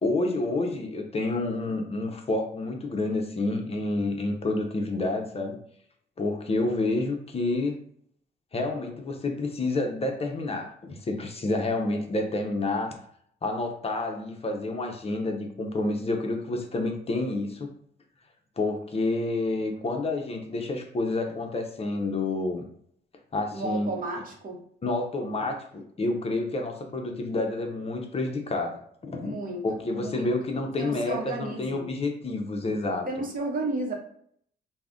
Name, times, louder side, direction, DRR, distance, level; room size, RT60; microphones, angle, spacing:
voice 1, 0.0-5.6 6.2-7.7 8.5-12.9 13.4-17.7 18.6-22.7 23.3-23.9 24.8-29.4 29.6-33.1, left 2 dB, 30° left, 3 dB, 0.5 m, -29 dB
voice 2, 23.5-24.6 29.2-30.4 30.8-31.9 33.1-33.9, right 2 dB, 45° right, 0 dB, 0.8 m, -33 dB
2.4 x 2.0 x 3.5 m, 0.63 s
cardioid pair, 85°, 19 cm